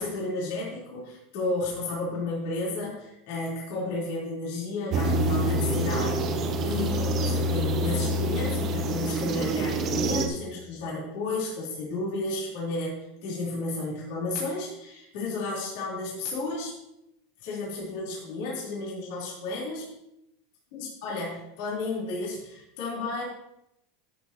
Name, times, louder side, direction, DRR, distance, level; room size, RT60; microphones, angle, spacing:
voice 1, 0.0-16.7 17.4-19.9 20.7-23.2, left 2 dB, 60° left, -6 dB, 4.0 m, -32 dB
sound 1, 4.9-10.3, right 1 dB, 30° right, 0.8 m, -26 dB
13.5 x 7.0 x 3.0 m, 0.85 s
supercardioid pair, 160°, 0 cm